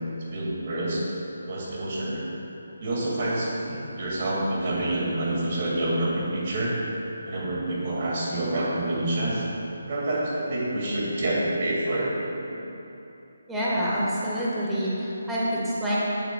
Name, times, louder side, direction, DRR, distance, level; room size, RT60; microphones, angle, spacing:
voice 1, 0.3-1.0 1.5-2.2 2.8-6.7 7.3-9.4 9.9-12.1 12.5-12.6, right 1 dB, 35° right, -4 dB, 2.1 m, -27 dB
voice 2, 13.5-16.0, equal, 5° right, -8 dB, 1.5 m, -27 dB
15.5 x 7.6 x 2.3 m, 3.0 s
figure-of-eight pair, 145°, 0 cm